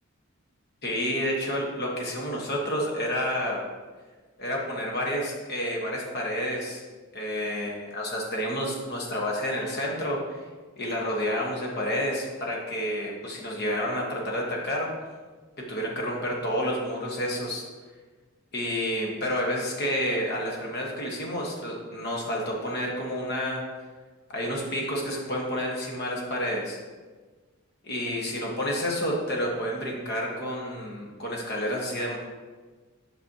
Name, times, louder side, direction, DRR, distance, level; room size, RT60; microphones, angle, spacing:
voice 1, 0.8-3.6 4.4-6.8 7.1-10.4 10.8-14.9 15.7-17.6 18.5-23.6 24.3-26.8 27.8-32.2, equal, 50° left, -2 dB, 1.3 m, -29 dB
7.9 x 5.4 x 2.9 m, 1.4 s
head